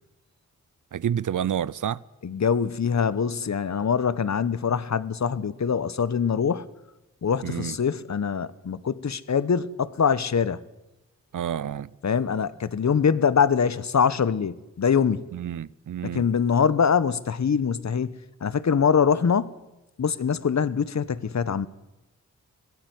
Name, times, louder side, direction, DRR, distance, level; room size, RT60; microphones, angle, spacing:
voice 1, 0.9-2.0 7.4-7.7 11.3-11.9 15.3-16.2, right 9 dB, 65° right, 0.7 m, -29 dB
voice 2, 2.2-6.7 7.2-10.6 12.0-15.3 16.0-18.2 18.4-19.5 20.0-21.7, left 6 dB, 55° left, 1.1 m, -23 dB
21.5 x 15.5 x 9.6 m
cardioid pair, 50°, 33 cm